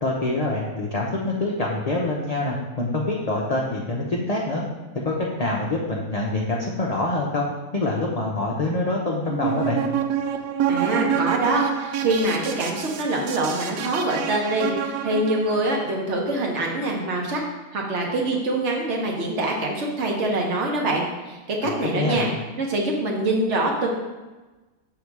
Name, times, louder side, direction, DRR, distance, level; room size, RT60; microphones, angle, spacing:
voice 1, 0.0-4.6 4.9-7.5 7.7-9.8 21.6-22.2, left 2 dB, 40° left, -3 dB, 0.5 m, -25 dB
sound 1, 9.3-15.6, right 8 dB, 75° right, 1.1 m, -27 dB
voice 2, 10.7-17.4 17.7-22.3 22.6-23.9, right 2 dB, 50° right, 0 dB, 1.3 m, -24 dB
6.6 x 3.8 x 4.7 m, 1.2 s
omnidirectional pair, 1.6 m